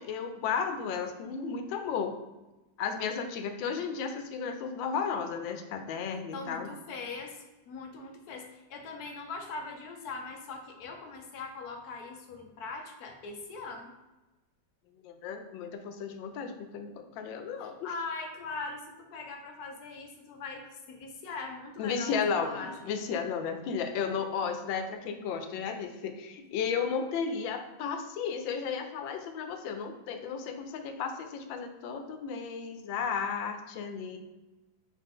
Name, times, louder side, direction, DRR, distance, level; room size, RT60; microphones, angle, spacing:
voice 1, 0.0-2.2 2.8-6.7 15.0-17.9 21.8-34.2, left 6 dB, 90° left, 7 dB, 1.3 m, -34 dB
voice 2, 6.3-7.4 7.7-13.9 17.6-22.9, left 3 dB, 65° left, 3 dB, 1.1 m, -41 dB
3.9 x 3.5 x 3.7 m, 1.1 s
omnidirectional pair, 2.0 m